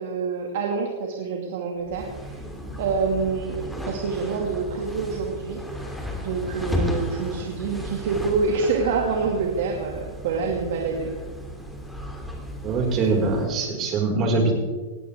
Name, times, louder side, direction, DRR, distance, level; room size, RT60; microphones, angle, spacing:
voice 1, 0.0-2.4 2.8-5.6 6.2-11.1, right 4 dB, 65° right, 1 dB, 2.2 m, -26 dB
sound 1, 1.8-13.6, left 1 dB, ahead, 2.7 m, -34 dB
voice 2, 12.6-14.5, right 3 dB, 35° right, 0 dB, 5.2 m, -23 dB
19.0 x 16.0 x 3.6 m, 1.4 s
hypercardioid pair, 125°, 0 cm